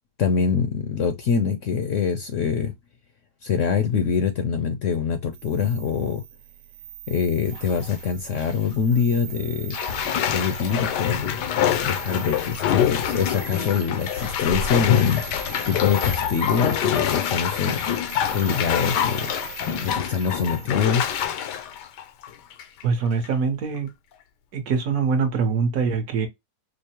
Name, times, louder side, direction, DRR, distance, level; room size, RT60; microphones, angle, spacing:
voice 1, 0.2-2.7 3.4-6.2 7.1-9.8 10.3-11.4 11.8-15.2 15.7-17.8 18.3-19.3 19.8-21.2, left 6 dB, 65° left, 0.8 m, -24 dB
sound 1, 5.3-21.3, right 13 dB, 85° right, 1.2 m, -40 dB
Bathtub (filling or washing), 7.5-8.0 8.4-8.5 9.7-22.8 23.2-23.3, left 9 dB, 85° left, 1.2 m, -26 dB
voice 2, 22.8-23.9 24.5-26.3, right 5 dB, 65° right, 1.4 m, -23 dB
5.2 x 2.1 x 2.8 m
omnidirectional pair, 1.8 m